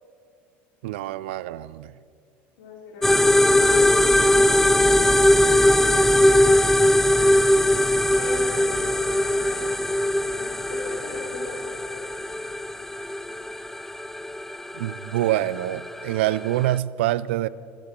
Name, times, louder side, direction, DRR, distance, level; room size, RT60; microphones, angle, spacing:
voice 1, 0.8-2.0 14.7-17.5, right 14 dB, 90° right, 19 dB, 0.4 m, -25 dB
voice 2, 2.6-5.5 8.1-12.0, left 4 dB, 90° left, -2 dB, 4.2 m, -41 dB
sound 1, 3.0-16.8, left 1 dB, 5° left, 0.3 m, -20 dB
14.5 x 11.5 x 7.1 m, 2.4 s
supercardioid pair, 100°, 6 cm